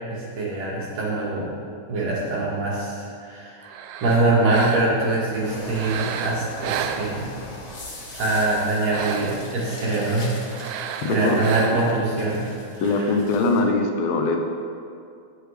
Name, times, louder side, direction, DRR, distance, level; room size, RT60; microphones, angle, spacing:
voice 1, 0.1-1.5 1.9-3.6 4.0-7.3 8.2-10.3 11.1-13.1, right 2 dB, 55° right, -5 dB, 2.7 m, -24 dB
sound 1, 3.6-5.1 5.7-7.6 8.1-9.6 10.5-12.1, right 8 dB, 85° right, 2.3 m, -32 dB
sound 2, 5.4-13.6, left 1 dB, 65° left, 0.8 m, -41 dB
voice 2, 12.8-14.4, left 3 dB, 85° left, 3 dB, 2.7 m, -22 dB
17.5 x 6.8 x 3.3 m, 2.4 s
omnidirectional pair, 4.0 m